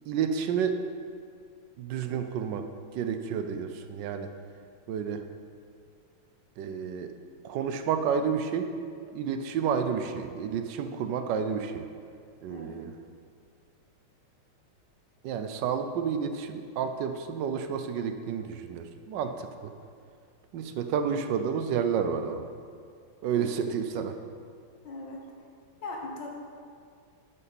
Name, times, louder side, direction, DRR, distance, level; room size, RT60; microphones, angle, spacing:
voice 1, 0.1-0.8 1.8-2.7 2.9-4.3 4.9-5.2 6.6-7.1 7.4-8.7 9.1-11.8 12.4-12.9 15.2-19.7 20.5-22.4 23.2-24.2, right 7 dB, 70° right, 8 dB, 1.2 m, -30 dB
voice 2, 12.5-12.8 24.8-25.2 25.8-26.3, left 2 dB, 60° left, -1 dB, 2.0 m, -39 dB
12.0 x 7.4 x 4.2 m, 2.2 s
omnidirectional pair, 2.3 m